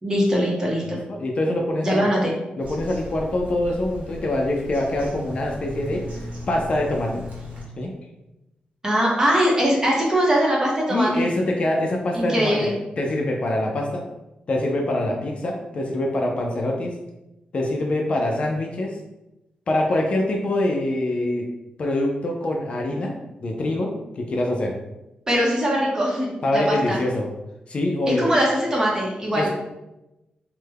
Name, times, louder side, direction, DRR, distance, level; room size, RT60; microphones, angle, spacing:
voice 1, 0.0-1.0 1.8-2.3 8.8-11.2 12.1-12.7 25.3-27.0 28.1-29.5, equal, 20° right, -3 dB, 0.7 m, -21 dB
voice 2, 0.8-2.1 2.6-7.2 7.8-7.9 10.9-14.0 14.5-17.0 17.5-19.0 19.7-21.5 21.8-23.1 23.4-23.9 24.2-24.7 26.4-27.3 27.7-28.3 29.3-29.5, left 1 dB, 40° left, 0 dB, 0.4 m, -24 dB
Bird vocalization bird call bird song, 2.6-7.6, equal, 55° right, 1.0 m, -37 dB
3.3 x 2.1 x 3.3 m, 0.95 s
wide cardioid pair, 155°, 3 cm